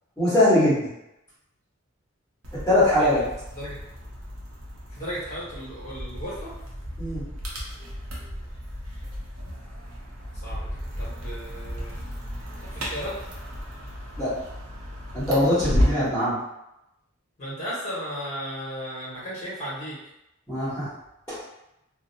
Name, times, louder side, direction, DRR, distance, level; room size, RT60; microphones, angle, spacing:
voice 1, 0.2-0.9 2.7-3.2 7.0-7.2 14.2-14.3 15.1-16.3 20.5-20.9 21.3-21.4, left 1 dB, 10° left, -15 dB, 1.3 m, -21 dB
sound 1, 2.4-16.2, equal, 85° right, 0.7 m, -33 dB
voice 2, 5.0-6.5 10.4-10.7 11.0-11.9 12.7-13.1 17.4-20.0, equal, 35° left, -7 dB, 1.2 m, -35 dB
2.7 x 2.0 x 2.7 m, 0.87 s
head